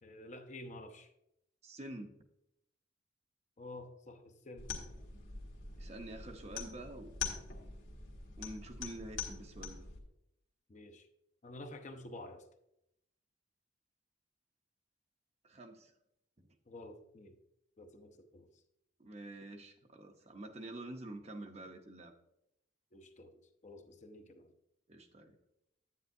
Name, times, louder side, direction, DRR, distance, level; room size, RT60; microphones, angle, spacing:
voice 1, 0.0-1.1 3.6-4.7 10.7-11.1 11.4-12.5 16.7-17.4 17.8-18.5 22.9-23.4 23.6-24.5, left 2 dB, 35° left, 6 dB, 0.7 m, -50 dB
voice 2, 1.6-2.2 5.8-7.2 8.4-9.8 15.4-15.9 16.4-16.6 19.0-22.1 24.9-25.4, right 1 dB, 35° right, 5 dB, 0.8 m, -47 dB
sound 1, 4.6-10.0, left 5 dB, 80° left, 1.7 m, -44 dB
9.5 x 8.8 x 2.7 m, 0.81 s
head